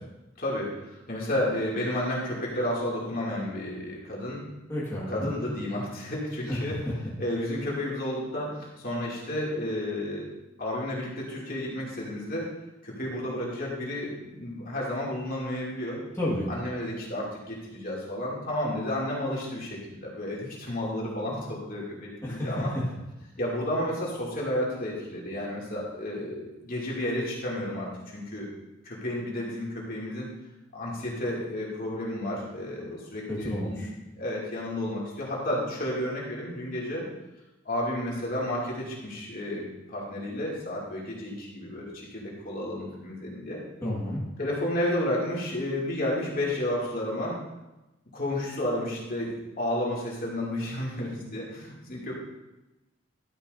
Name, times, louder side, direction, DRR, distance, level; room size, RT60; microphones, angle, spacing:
voice 1, 0.4-4.4 5.1-6.7 7.2-10.3 10.6-12.5 12.8-16.0 16.5-22.7 23.4-28.5 28.8-30.3 30.7-33.9 34.2-37.1 37.6-43.6 44.4-47.4 48.1-52.1, left 1 dB, 50° left, -4 dB, 2.7 m, -32 dB
voice 2, 4.7-5.3 6.5-6.9 16.2-16.5 22.2-22.9 33.3-33.9 43.8-44.2, left 1 dB, 15° left, -7 dB, 1.8 m, -31 dB
12.0 x 9.9 x 2.7 m, 1.0 s
head